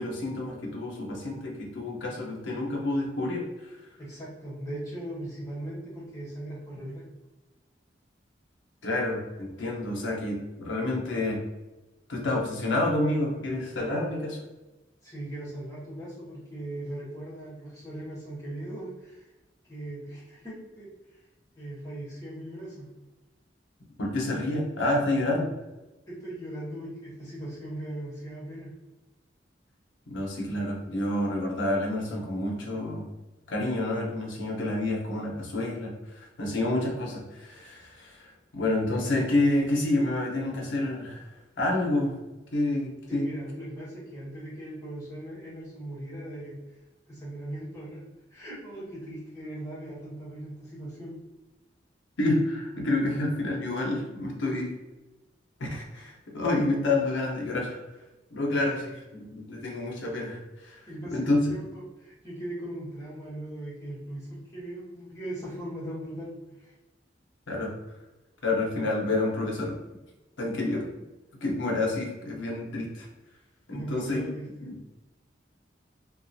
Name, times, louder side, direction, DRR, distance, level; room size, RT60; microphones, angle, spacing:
voice 1, 0.0-3.5 8.8-11.4 12.1-14.4 24.0-25.5 30.1-33.1 33.5-41.3 41.6-42.1 42.5-43.3 52.2-54.7 55.6-57.8 58.3-60.8 61.1-61.4 67.5-67.7 68.4-69.8 70.4-70.9 71.4-73.1 73.7-74.2 74.6-74.8, left 2 dB, 90° left, -1 dB, 0.8 m, -28 dB
voice 2, 4.0-7.1 15.0-19.3 19.7-21.2 21.6-22.9 26.1-28.7 43.1-46.5 47.1-48.0 48.3-51.2 58.6-58.8 60.9-66.7 73.7-74.5, right 1 dB, 20° left, -9 dB, 1.2 m, -39 dB
3.1 x 2.4 x 2.6 m, 1.1 s
head